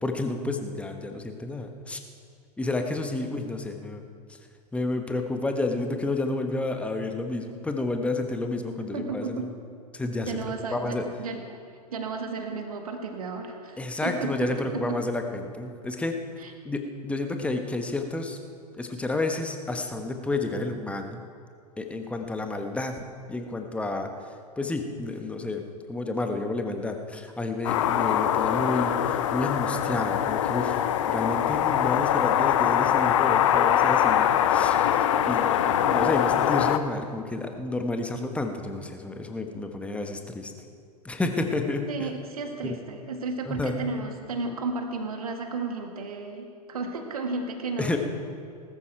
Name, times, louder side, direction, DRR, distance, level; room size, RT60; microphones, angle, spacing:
voice 1, 0.0-2.0 2.6-4.0 4.7-9.5 9.9-10.4 10.7-11.0 13.8-16.2 16.6-18.4 18.7-21.2 21.8-22.9 23.3-24.1 24.6-25.6 25.9-40.5 41.0-42.1 42.6-42.8 43.4-43.7 47.8-48.0, left 2 dB, 5° left, 5 dB, 1.2 m, -30 dB
voice 2, 8.9-9.5 10.3-11.4 11.9-15.0 16.4-16.5 41.9-48.0, right 3 dB, 65° right, 4 dB, 1.8 m, -33 dB
sound 1, 27.6-36.8, left 10 dB, 50° left, 0.8 m, -23 dB
19.5 x 13.0 x 4.6 m, 2.2 s
figure-of-eight pair, 95°, 20 cm